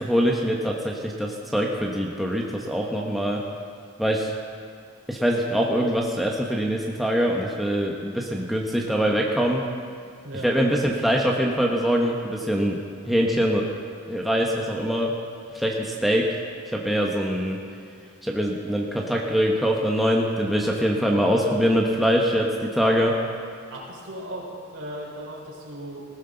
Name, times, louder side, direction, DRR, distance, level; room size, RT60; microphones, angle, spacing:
voice 1, 0.0-3.4 4.0-4.3 5.1-9.6 10.4-12.8 13.0-13.6 14.1-15.1 15.5-16.3 16.7-17.6 18.2-23.1, equal, ahead, -2 dB, 1.1 m, -23 dB
voice 2, 10.2-10.6 21.2-21.7 22.8-23.2 23.7-26.1, equal, 75° right, -4 dB, 4.4 m, -37 dB
19.5 x 15.5 x 3.9 m, 2.2 s
head